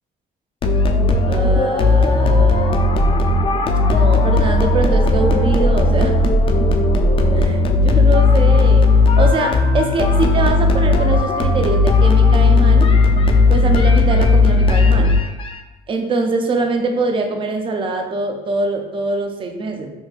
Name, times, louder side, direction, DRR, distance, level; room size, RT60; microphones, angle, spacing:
sound 1, 0.6-15.5, left 3 dB, 30° left, 0.4 m, -15 dB
voice 1, 1.3-6.2 7.3-8.9 9.1-12.9 13.5-15.1 15.9-19.9, right 3 dB, 30° right, 4 dB, 0.4 m, -23 dB
3.8 x 2.7 x 2.4 m, 1.1 s
cardioid pair, 110°, 17 cm